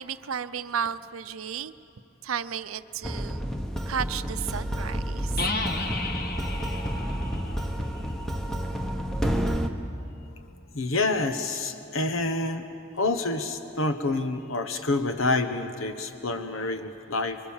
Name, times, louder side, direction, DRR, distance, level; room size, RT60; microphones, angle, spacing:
voice 1, 0.0-1.7 2.2-3.5 3.9-5.4, right 8 dB, 85° right, 14 dB, 0.6 m, -33 dB
sound 1, 3.0-9.7, equal, ahead, 1.1 m, -30 dB
sound 2, 5.4-9.0, left 3 dB, 50° left, 1.7 m, -34 dB
voice 2, 10.7-12.6 12.9-17.4, left 2 dB, 75° left, 8 dB, 1.2 m, -27 dB
25.0 x 23.0 x 7.2 m, 2.6 s
head